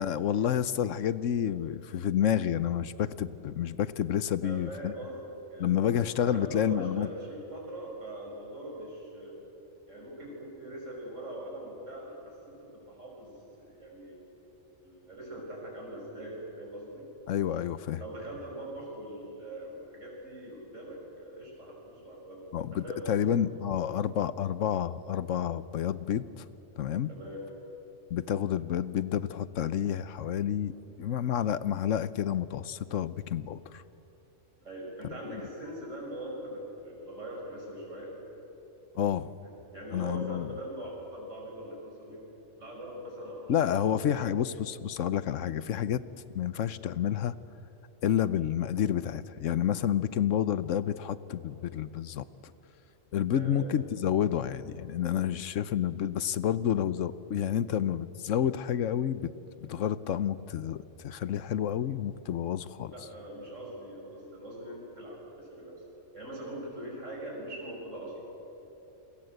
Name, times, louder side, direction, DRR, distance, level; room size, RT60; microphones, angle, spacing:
voice 1, 0.0-4.9 5.6-7.1 17.3-18.0 22.5-26.4 26.8-27.1 28.1-33.8 35.1-35.4 38.9-39.3 39.9-40.5 43.5-46.0 46.3-47.3 48.0-52.2 53.1-59.3 59.6-62.9, left 9 dB, 85° left, 15 dB, 1.1 m, -29 dB
voice 2, 4.4-6.0 6.2-9.4 9.9-13.3 13.7-14.2 14.8-17.0 18.0-22.4 22.7-23.2 27.1-27.4 34.6-38.1 39.4-42.2 42.6-44.1 53.3-53.8 62.9-65.7 66.1-68.3, right 1 dB, 75° right, -2 dB, 6.3 m, -42 dB
29.0 x 22.0 x 7.9 m, 2.9 s
omnidirectional pair, 1.3 m